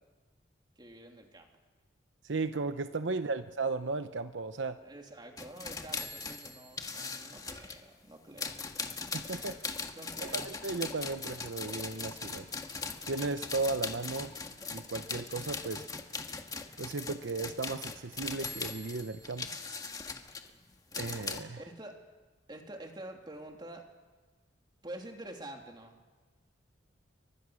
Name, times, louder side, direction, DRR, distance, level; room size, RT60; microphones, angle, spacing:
voice 1, 0.8-1.5 3.3-3.4 4.8-8.6 9.9-10.5 21.6-22.0 22.5-23.9 24.8-26.0, right 1 dB, 25° right, 2 dB, 3.1 m, -47 dB
voice 2, 2.2-4.8 9.1-9.6 10.2-12.5 13.1-14.3 14.7-15.9 16.8-19.5 21.0-21.6, right 3 dB, 75° right, 10 dB, 0.8 m, -35 dB
sound 1, 5.4-7.8 8.4-21.4, left 4 dB, 20° left, 1.6 m, -40 dB
29.5 x 24.0 x 6.4 m, 1.3 s
head